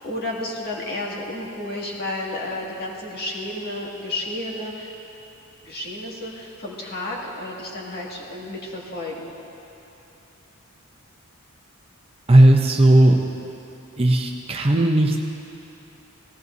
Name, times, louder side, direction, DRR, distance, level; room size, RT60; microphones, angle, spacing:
voice 1, 0.0-4.9 5.7-9.3, left 1 dB, 45° left, -4 dB, 2.1 m, -31 dB
voice 2, 12.3-13.2 14.0-15.2, right 1 dB, 25° right, 2 dB, 0.6 m, -15 dB
18.0 x 16.5 x 2.7 m, 2.9 s
head